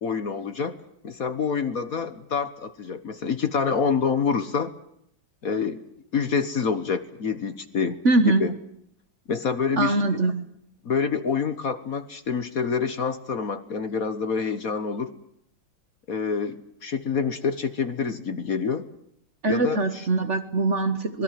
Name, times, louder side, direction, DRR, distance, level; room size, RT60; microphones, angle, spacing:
voice 1, 0.0-0.8 1.0-4.7 5.4-5.8 6.1-8.5 9.3-10.2 10.8-15.1 16.1-18.8 19.5-20.1, left 6 dB, 50° left, 10 dB, 1.6 m, -27 dB
voice 2, 8.0-8.4 9.8-10.4 19.4-21.2, right 2 dB, 40° right, 9 dB, 1.4 m, -22 dB
26.0 x 21.0 x 7.6 m, 0.75 s
omnidirectional pair, 2.2 m